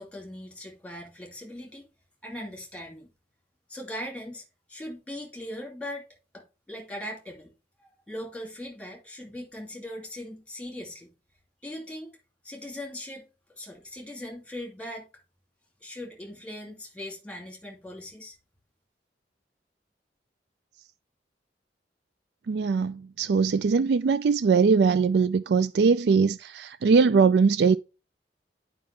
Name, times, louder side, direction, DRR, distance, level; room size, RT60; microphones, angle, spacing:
voice 1, 0.0-1.9 2.2-3.1 3.7-4.4 4.7-6.1 6.3-7.5 7.8-11.1 11.6-12.1 12.4-15.1 15.8-18.4, left 1 dB, 5° left, 2.5 m, -40 dB
voice 2, 22.5-27.8, right 5 dB, 70° right, 0.4 m, -21 dB
9.4 x 5.3 x 3.3 m
head